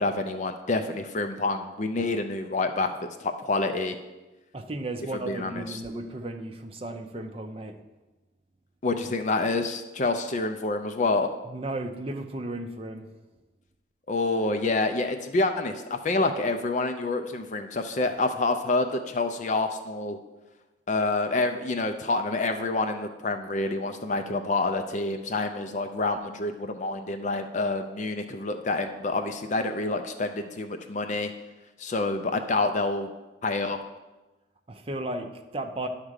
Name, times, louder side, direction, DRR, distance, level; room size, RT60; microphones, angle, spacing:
voice 1, 0.0-2.9 3.2-4.0 5.3-5.8 8.8-11.3 14.1-20.2 20.9-31.3 31.8-33.1 33.4-33.8, left 3 dB, 40° left, 7 dB, 0.5 m, -27 dB
voice 2, 4.5-7.8 11.4-13.1 34.7-35.9, right 2 dB, 30° right, 5 dB, 0.6 m, -35 dB
11.0 x 3.6 x 6.5 m, 1.1 s
head